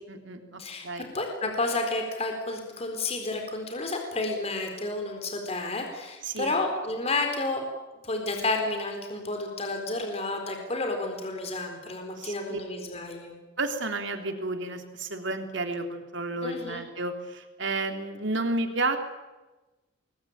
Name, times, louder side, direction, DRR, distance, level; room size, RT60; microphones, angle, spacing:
voice 1, 0.1-1.1 6.2-6.5 12.2-12.6 13.6-19.0, right 2 dB, 60° right, 5 dB, 3.5 m, -31 dB
voice 2, 0.6-7.6 8.0-13.3 16.4-16.8, left 2 dB, 30° left, 3 dB, 4.3 m, -31 dB
28.5 x 21.5 x 9.0 m, 1.1 s
head